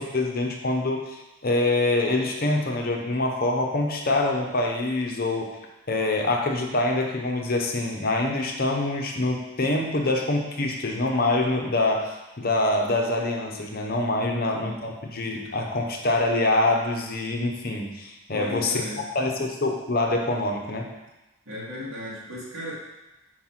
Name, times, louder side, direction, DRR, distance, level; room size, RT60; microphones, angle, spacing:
voice 1, 0.0-5.5 5.9-18.8 19.1-20.9, left 2 dB, 45° left, 1 dB, 0.7 m, -25 dB
voice 2, 14.1-14.8 18.3-19.0 21.5-22.8, left 1 dB, 70° right, -6 dB, 2.1 m, -36 dB
4.6 x 4.5 x 5.8 m, 1.0 s
head